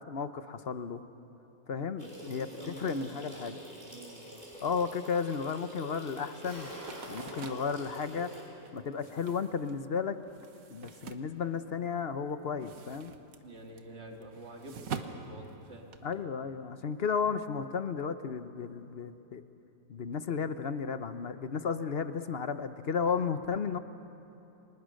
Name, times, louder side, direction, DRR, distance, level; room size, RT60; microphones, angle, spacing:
voice 1, 0.1-1.0 1.7-3.6 4.6-6.7 7.1-8.3 8.7-10.2 10.7-13.1 16.0-19.4 19.9-23.8, left 6 dB, 50° left, 10 dB, 1.0 m, -33 dB
sound 1, 2.0-8.4, equal, 30° right, 6.5 m, -47 dB
voice 2, 2.0-3.5 3.9-4.4 13.4-15.9, right 1 dB, 45° right, 1 dB, 2.5 m, -48 dB
sound 2, 6.4-9.3, equal, 10° right, 3.2 m, -48 dB
sound 3, 6.6-12.0 12.3-16.2, right 6 dB, 70° right, 1.6 m, -45 dB
29.5 x 25.0 x 6.5 m, 3.0 s
omnidirectional pair, 1.5 m